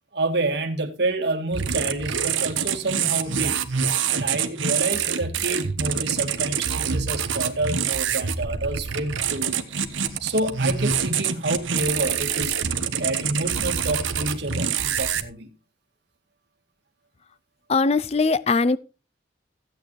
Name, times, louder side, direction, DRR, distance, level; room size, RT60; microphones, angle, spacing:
voice 1, 0.1-3.6 4.1-9.6 10.2-12.6 13.0-15.5, right 2 dB, 60° right, 1.8 m, -28 dB
sound 1, 1.5-15.2, right 7 dB, 90° right, 1.2 m, -26 dB
voice 2, 17.7-18.8, left 4 dB, 35° left, 0.4 m, -20 dB
15.0 x 8.8 x 3.1 m
head